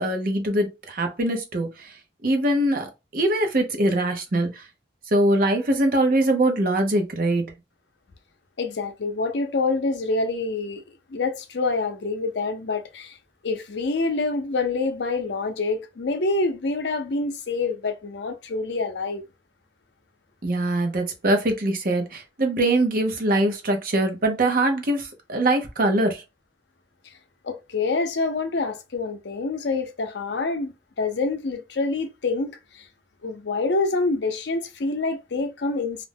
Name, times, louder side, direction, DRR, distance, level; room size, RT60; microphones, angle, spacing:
voice 1, 0.0-1.9 2.2-2.9 3.1-4.7 5.1-7.4 20.4-26.2, right 1 dB, 50° right, 0.7 m, -22 dB
voice 2, 8.6-10.8 11.1-13.2 13.4-19.2 27.4-32.9 33.2-36.1, left 3 dB, 70° left, 0.6 m, -26 dB
2.5 x 2.1 x 3.4 m
head